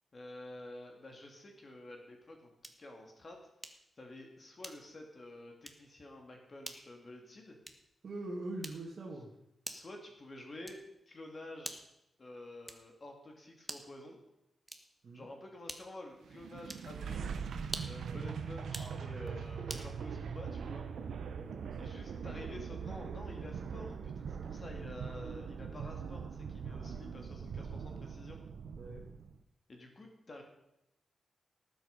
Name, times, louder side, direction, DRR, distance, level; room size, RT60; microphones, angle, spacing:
voice 1, 0.1-3.4 4.0-7.6 9.7-10.8 11.1-11.8 12.2-14.2 15.1-17.3 17.8-20.9 21.8-28.4 29.7-30.4, left 1 dB, 40° left, 2 dB, 2.5 m, -50 dB
sound 1, 2.6-2.9 3.6-3.9 4.6-5.1 5.6-5.9 6.6-6.9 7.6-8.0 8.6-9.0 9.6-10.0 10.6-11.0 11.6-12.0 12.6-13.0 13.6-14.0 14.6-15.0 15.7-16.1 16.6-16.9 17.6-18.1 18.6-19.0 19.7-19.9, right 1 dB, 5° right, 1.3 m, -46 dB
voice 2, 8.0-9.3 15.0-15.3 18.0-18.2 18.7-19.4 21.4-21.8 28.8-29.0, right 2 dB, 60° right, -2 dB, 2.1 m, -44 dB
sound 2, 16.2-29.3, right 6 dB, 85° right, 0.9 m, -41 dB
18.5 x 7.8 x 5.3 m, 0.83 s
wide cardioid pair, 105°, 0 cm